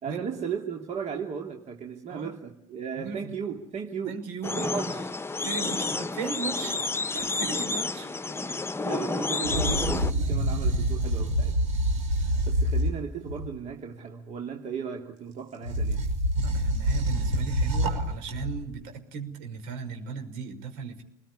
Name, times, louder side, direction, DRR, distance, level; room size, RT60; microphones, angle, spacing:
voice 1, 0.0-4.2 4.5-5.1 8.3-11.6 12.2-16.1, right 6 dB, 45° right, 2 dB, 2.9 m, -36 dB
voice 2, 3.0-3.3 4.0-5.0 5.4-8.1 16.4-21.0, right 5 dB, 65° right, 6 dB, 5.5 m, -37 dB
sound 1, 4.4-10.1, left 3 dB, 15° left, 1.3 m, -30 dB
sound 2, 9.4-13.6 15.6-18.7, right 1 dB, 80° right, 6.3 m, -26 dB
28.0 x 21.0 x 9.9 m, 0.70 s
hypercardioid pair, 70°, 17 cm